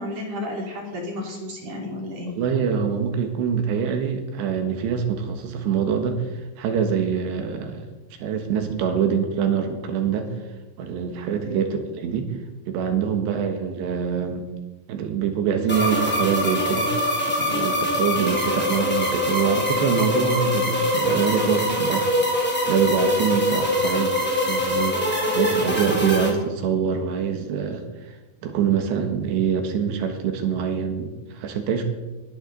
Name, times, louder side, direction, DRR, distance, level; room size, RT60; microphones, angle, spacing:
voice 1, 0.0-2.3 11.3-11.6, left 1 dB, 40° right, 0 dB, 3.4 m, -32 dB
voice 2, 2.3-7.9 8.2-10.3 10.8-12.3 12.7-14.5 14.9-16.9 17.4-22.1 22.7-24.2 24.4-31.8, right 7 dB, 75° right, 5 dB, 3.5 m, -25 dB
sound 1, 15.7-26.3, left 1 dB, 10° left, 0.6 m, -23 dB
21.0 x 11.5 x 4.0 m, 1.2 s
omnidirectional pair, 5.2 m